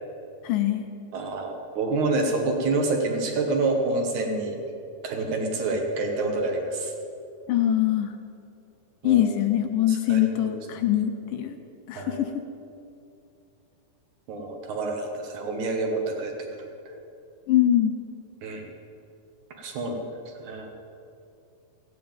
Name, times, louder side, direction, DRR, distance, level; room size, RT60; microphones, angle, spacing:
voice 1, 0.4-0.8 7.5-8.1 9.0-11.6 11.9-12.4 17.5-18.0, left 12 dB, 75° left, 7 dB, 2.1 m, -23 dB
voice 2, 1.1-4.6 5.0-6.9 9.0-9.3 9.9-10.8 11.9-12.2 14.3-16.9 18.4-18.7 19.6-20.0 20.3-20.7, right 3 dB, 65° right, 3 dB, 2.4 m, -28 dB
14.0 x 9.0 x 8.8 m, 2.6 s
omnidirectional pair, 4.2 m